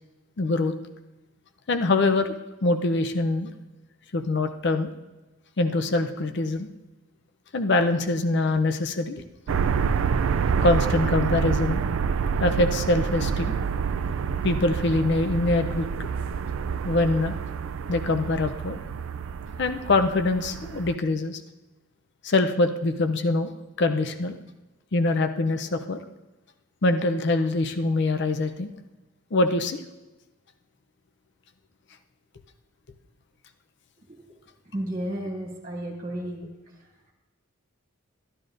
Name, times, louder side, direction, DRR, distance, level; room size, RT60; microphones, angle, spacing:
voice 1, 0.4-0.7 1.7-2.3 2.6-3.5 4.1-4.9 5.6-6.7 7.5-9.2 10.6-11.8 12.4-13.6 14.4-16.1 16.8-17.3 17.9-18.8 19.6-21.4 22.2-23.5 23.8-24.4 24.9-26.0 26.8-28.7 29.3-29.8, left 2 dB, 55° left, 8 dB, 0.6 m, -24 dB
sound 1, 9.5-20.9, right 6 dB, 75° right, 0.3 m, -27 dB
voice 2, 34.7-36.5, right 1 dB, 40° right, -2 dB, 2.4 m, -32 dB
12.5 x 12.0 x 2.6 m, 1.1 s
head